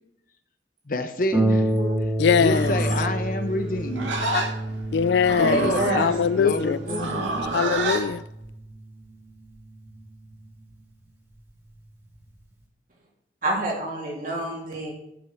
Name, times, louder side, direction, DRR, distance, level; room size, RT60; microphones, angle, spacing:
voice 1, 0.9-1.7 2.4-4.5 5.4-6.0 6.4-7.2, left 2 dB, 50° left, 0.8 m, -28 dB
Harp, 1.3-10.5 11.3-11.4 11.9-12.0, right 1 dB, 15° right, 2.4 m, -29 dB
voice 2, 1.4-2.0 5.4-6.2 6.9-7.6 13.4-14.9, right 1 dB, 45° right, 3.0 m, -29 dB
voice 3, 2.2-2.8 4.9-6.8 7.5-8.2, left 6 dB, 70° left, 0.4 m, -22 dB
Livestock farm animals working animals, 2.4-8.1, right 3 dB, 90° right, 2.0 m, -30 dB
11.0 x 6.1 x 6.1 m
head